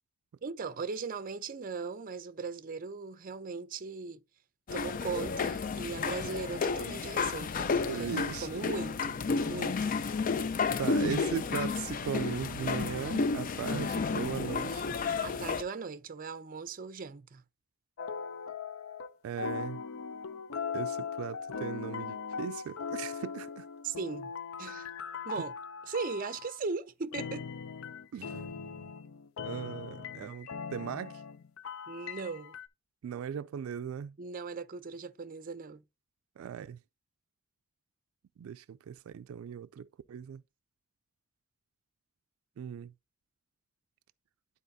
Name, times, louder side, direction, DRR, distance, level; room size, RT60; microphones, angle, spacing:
voice 1, 0.4-4.2 4.7-10.0 15.2-17.4 23.8-24.3 24.6-24.9 25.2-25.5 25.9-27.5 31.9-32.5 34.2-35.8, right 4 dB, 40° right, 0.5 m, -38 dB
sound 1, 4.7-15.6, left 4 dB, 40° left, 0.4 m, -32 dB
voice 2, 7.9-8.6 10.8-14.9 19.2-19.8 20.7-23.7 25.4-25.5 28.1-28.9 29.4-31.2 33.0-34.1 36.4-36.8 38.4-40.4 42.6-42.9, right 8 dB, 85° right, 0.3 m, -38 dB
sound 2, 18.0-19.1 19.4-26.6 27.1-32.7, left 6 dB, 90° left, 0.6 m, -40 dB
11.5 x 4.1 x 2.7 m
head